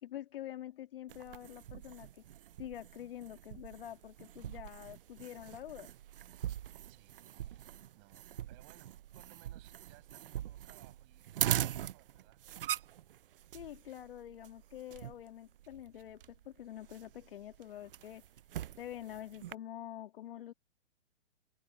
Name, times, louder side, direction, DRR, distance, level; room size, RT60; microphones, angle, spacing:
voice 1, 0.0-2.2 2.6-5.9 13.5-18.2 18.8-20.5, left 12 dB, 50° left, 1.8 m, -46 dB
sound 1, 1.1-19.5, right 12 dB, 50° right, 0.6 m, -42 dB
voice 2, 6.9-12.4, right 32 dB, 30° right, 6.8 m, -63 dB
hypercardioid pair, 135°, 35 cm